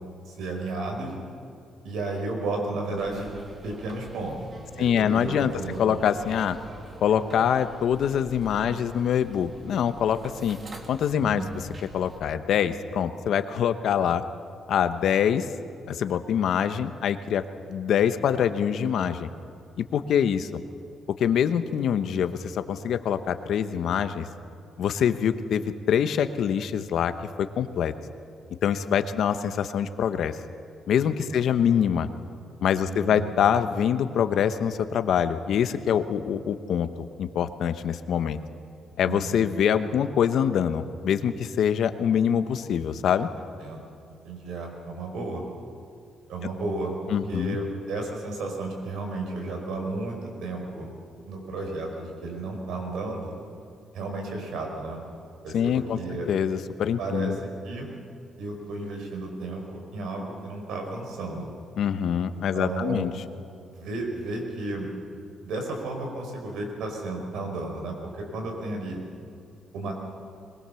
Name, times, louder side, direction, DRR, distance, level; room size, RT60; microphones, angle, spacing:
voice 1, 0.3-1.2 1.8-3.3 3.6-4.4 4.8-6.0 11.2-11.5 31.3-31.4 32.8-33.3 39.1-39.4 43.6-45.4 46.3-50.9 51.3-53.3 53.9-55.0 55.4-56.3 57.0-57.3 57.6-57.9 58.4-61.5 62.5-63.1 63.8-64.9 65.4-69.0 69.7-69.9, right 2 dB, 85° right, 2 dB, 5.0 m, -33 dB
sound 1, 3.0-12.2, right 1 dB, 30° right, 2.0 m, -46 dB
voice 2, 4.8-5.5 5.8-6.6 7.0-10.6 10.9-14.2 14.7-15.5 15.9-17.4 17.7-19.3 19.8-20.6 21.2-24.3 24.8-27.9 28.6-30.4 30.9-32.1 32.6-38.4 39.0-43.3 47.1-47.6 55.5-56.0 56.3-57.4 61.8-63.1, left 8 dB, 65° left, 10 dB, 1.0 m, -25 dB
22.0 x 21.0 x 7.1 m, 2.4 s
cardioid pair, 145°, 0 cm